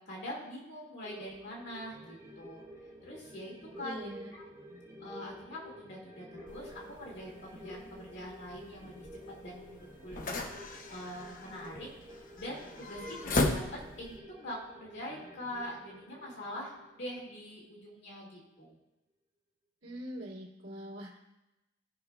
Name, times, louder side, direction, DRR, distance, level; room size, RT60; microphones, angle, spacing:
voice 1, 0.1-2.6 3.0-4.4 5.0-9.1 9.4-11.9 12.4-18.8, equal, 55° left, -3 dB, 2.2 m, -44 dB
sound 1, 1.0-17.8 18.2-18.3, equal, 15° right, 3.0 m, -51 dB
voice 2, 3.8-4.3 19.8-21.2, equal, 75° right, -4 dB, 2.4 m, -43 dB
sound 2, 6.5-14.2, left 2 dB, 40° left, 0.7 m, -38 dB
16.5 x 5.8 x 2.3 m, 0.95 s
head